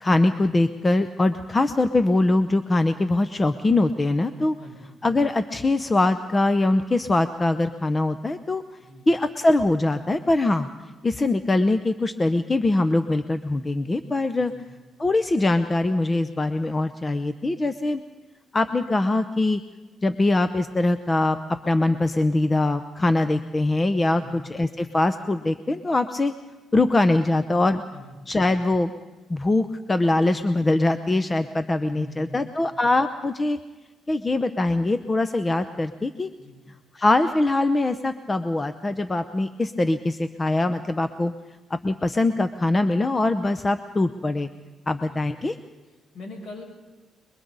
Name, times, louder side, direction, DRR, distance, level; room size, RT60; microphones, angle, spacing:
voice 1, 0.0-4.5 5.0-8.6 9.1-10.7 11.0-14.5 15.0-18.0 18.5-19.6 20.0-21.4 21.6-26.3 26.7-27.8 28.3-28.9 29.3-33.6 34.1-36.3 36.9-41.3 41.7-44.5 44.9-45.6, left 2 dB, 25° left, 10 dB, 0.8 m, -22 dB
voice 2, 4.6-4.9 8.8-9.1 14.4-14.7 24.1-24.4 27.9-28.1 31.9-32.8 36.4-36.6 44.9-45.2 45.9-46.6, left 1 dB, 60° left, 0 dB, 7.7 m, -43 dB
29.0 x 22.5 x 4.1 m, 1.2 s
cardioid pair, 90°, 0 cm